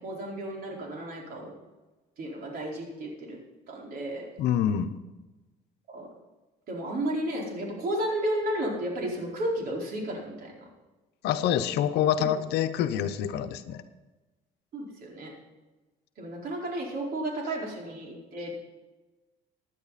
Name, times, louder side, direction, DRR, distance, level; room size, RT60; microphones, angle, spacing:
voice 1, 0.0-1.5 2.2-3.4 3.7-4.3 5.9-6.1 6.7-10.7 14.7-15.3 16.2-18.5, right 1 dB, 60° right, -1 dB, 4.7 m, -33 dB
voice 2, 4.4-4.9 11.2-13.8, left 9 dB, 80° left, 9 dB, 0.9 m, -26 dB
16.5 x 10.0 x 4.2 m, 1.2 s
cardioid pair, 110°, 17 cm